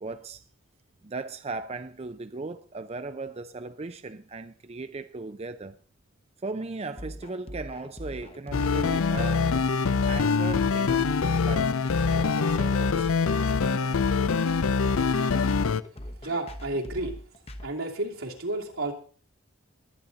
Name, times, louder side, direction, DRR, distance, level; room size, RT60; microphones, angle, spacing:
voice 1, 0.0-0.4 1.0-5.8 6.4-9.5 10.0-11.0 11.4-11.7 12.1-13.1 14.1-14.2, right 3 dB, 30° right, 0.5 m, -37 dB
sound 1, 7.0-17.7, left 1 dB, 30° left, 1.0 m, -41 dB
sound 2, 8.5-15.8, left 5 dB, 85° left, 0.6 m, -24 dB
voice 2, 16.2-17.2 17.6-18.9, right 2 dB, 80° right, 2.8 m, -31 dB
21.5 x 9.2 x 4.0 m
head